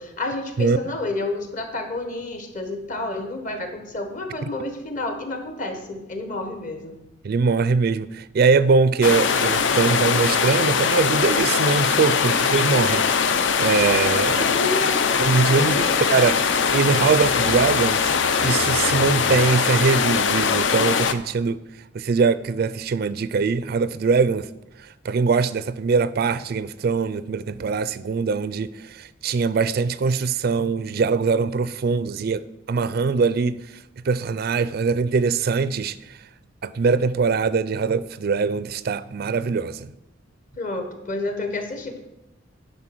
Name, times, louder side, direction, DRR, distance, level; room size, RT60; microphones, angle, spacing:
voice 1, 0.0-7.0 14.3-15.1 15.5-15.9 40.6-42.0, left 2 dB, 40° left, 1.4 m, -30 dB
voice 2, 7.2-14.5 15.2-18.1 18.4-21.6 21.9-24.5 24.8-33.5 34.0-36.0 36.6-39.9, right 4 dB, 50° right, 0.4 m, -22 dB
sound 1, 9.0-21.1, left 6 dB, 65° left, 0.6 m, -21 dB
9.6 x 5.4 x 6.1 m
head